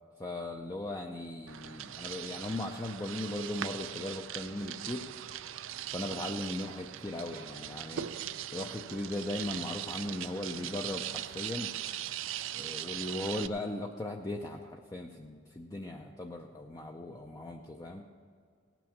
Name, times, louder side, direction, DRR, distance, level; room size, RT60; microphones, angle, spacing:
voice 1, 0.2-5.0 5.9-8.1 8.5-11.7 12.5-18.0, left 1 dB, 20° left, 2 dB, 0.5 m, -38 dB
sound 1, 1.5-13.5, right 11 dB, 85° right, 0.4 m, -40 dB
17.5 x 6.1 x 7.2 m, 2.2 s
head